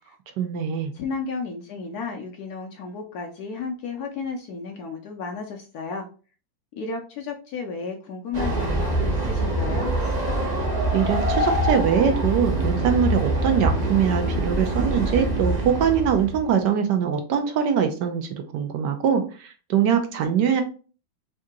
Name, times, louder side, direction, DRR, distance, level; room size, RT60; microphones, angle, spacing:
voice 1, 0.4-0.9 10.9-20.6, right 7 dB, 70° right, 6 dB, 1.1 m, -23 dB
voice 2, 0.9-6.1 6.7-9.9, left 4 dB, 75° left, 2 dB, 0.9 m, -33 dB
Train, 8.3-16.5, right 1 dB, 40° right, 0.6 m, -24 dB
3.7 x 2.7 x 3.5 m, 0.37 s
omnidirectional pair, 2.2 m